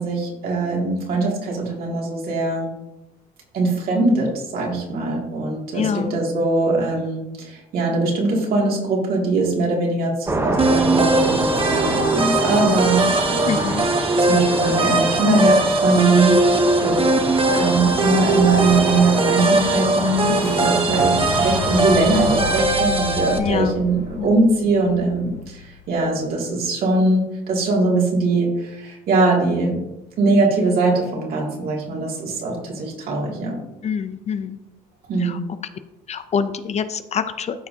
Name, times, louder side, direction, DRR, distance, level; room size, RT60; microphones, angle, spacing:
voice 1, 0.0-2.7 3.5-13.7 14.3-17.0 17.5-29.8 30.2-33.6 35.1-35.4, right 2 dB, 65° right, -2 dB, 2.5 m, -21 dB
voice 2, 5.7-6.2 13.5-13.9 23.4-23.8 24.2-24.3 33.8-34.6 35.2-35.4 36.1-37.7, left 7 dB, 40° left, 11 dB, 0.6 m, -25 dB
sound 1, 10.3-22.7, right 2 dB, 15° right, 1.0 m, -27 dB
sound 2, 10.6-23.4, right 2 dB, 30° right, 1.2 m, -20 dB
Fire / Explosion, 20.4-26.3, left 4 dB, 65° left, 1.3 m, -32 dB
13.5 x 4.7 x 2.8 m, 0.97 s
cardioid pair, 110°, 17 cm